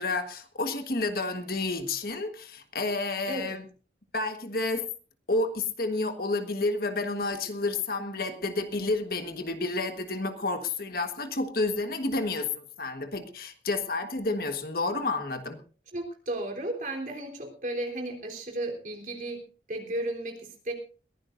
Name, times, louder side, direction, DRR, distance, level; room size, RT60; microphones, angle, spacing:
voice 1, 0.0-3.6 4.1-4.8 5.3-15.6, left 3 dB, 55° left, 7 dB, 1.5 m, -30 dB
voice 2, 15.9-19.4 19.7-20.4 20.7-20.8, right 1 dB, 45° right, 1 dB, 3.6 m, -34 dB
22.0 x 15.5 x 2.6 m, 0.38 s
head